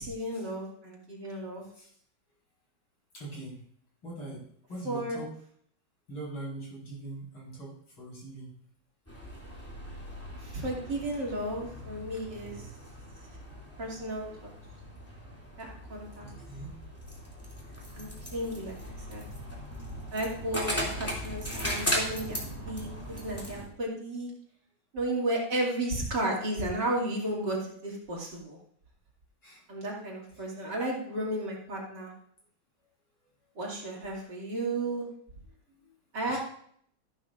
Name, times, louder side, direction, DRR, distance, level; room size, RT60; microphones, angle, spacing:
voice 1, 0.0-1.6 4.8-5.2 10.4-12.7 13.8-14.5 15.6-16.3 17.9-18.7 19.1-19.2 20.1-22.4 22.7-22.9 23.2-24.3 24.9-28.6 29.7-32.1 33.6-35.1 36.1-36.4, right 1 dB, 60° right, -2 dB, 3.2 m, -33 dB
voice 2, 3.1-3.6 4.0-4.4 4.7-5.3 6.1-8.5 13.4-13.8 16.2-16.7 29.4-29.6 35.7-36.0 36.3-36.4, right 2 dB, 80° left, -5 dB, 6.1 m, -42 dB
sound 1, 9.1-23.7, equal, 5° left, 2.6 m, -38 dB
13.5 x 11.5 x 2.6 m, 0.62 s
omnidirectional pair, 2.2 m